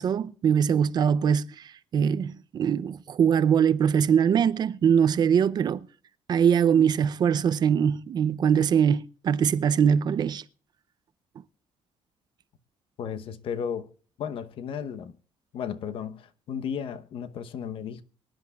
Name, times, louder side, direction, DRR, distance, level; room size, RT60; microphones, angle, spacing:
voice 1, 0.0-5.9 6.3-10.4, right 7 dB, 45° right, 0.5 m, -22 dB
voice 2, 13.0-13.9 14.2-15.1 15.5-18.0, left 7 dB, 60° left, 0.9 m, -34 dB
24.0 x 10.5 x 2.3 m
cardioid pair, 160°, 10 cm